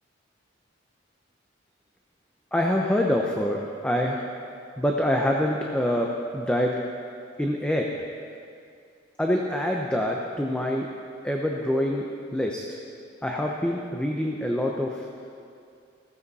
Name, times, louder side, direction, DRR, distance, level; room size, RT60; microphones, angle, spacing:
voice 1, 2.5-4.2 4.8-6.7 7.4-7.9 9.2-10.9 11.2-12.1 12.3-12.8 13.2-15.0, left 1 dB, 5° left, 0 dB, 0.7 m, -25 dB
15.0 x 15.0 x 4.2 m, 2.4 s
head